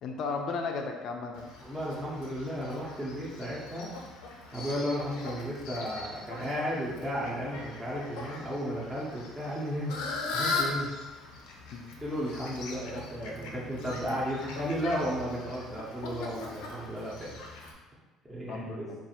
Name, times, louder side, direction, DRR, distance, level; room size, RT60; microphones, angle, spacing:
voice 1, 0.0-1.5 11.7-11.8 18.5-19.0, left 4 dB, 45° left, 3 dB, 0.5 m, -34 dB
Fowl, 1.3-17.7, left 3 dB, 90° left, 0.6 m, -40 dB
voice 2, 1.6-3.9 4.5-9.9 10.3-10.9 12.0-17.3 18.3-18.9, equal, 10° right, -8 dB, 0.6 m, -34 dB
3.5 x 2.4 x 4.2 m, 1.2 s
cardioid pair, 165°, 0 cm